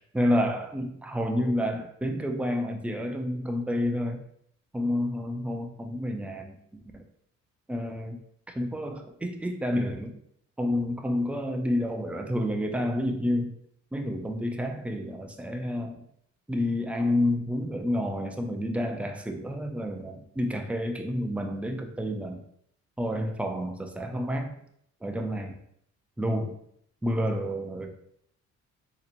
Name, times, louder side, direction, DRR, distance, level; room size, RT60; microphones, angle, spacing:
voice 1, 0.1-4.2 4.7-7.0 7.7-8.2 8.5-10.1 10.6-13.5 13.9-16.0 16.5-22.4 23.0-24.5 25.0-25.6 26.2-26.6 27.0-27.9, left 1 dB, 5° right, 4 dB, 0.4 m, -29 dB
3.9 x 2.9 x 2.5 m, 0.69 s
cardioid pair, 90°, 30 cm